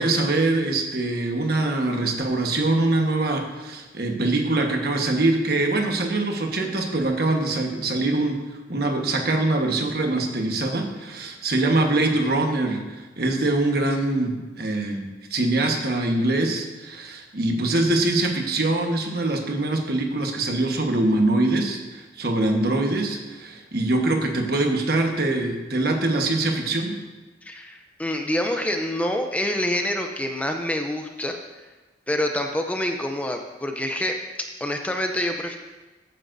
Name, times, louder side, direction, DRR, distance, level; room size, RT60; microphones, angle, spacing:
voice 1, 0.0-8.4 8.7-15.0 15.3-27.0, right 2 dB, 55° right, 3 dB, 1.3 m, -23 dB
voice 2, 27.4-31.4 32.1-34.2 34.6-35.6, left 1 dB, 10° left, 4 dB, 0.5 m, -26 dB
14.5 x 9.1 x 2.6 m, 1.2 s
head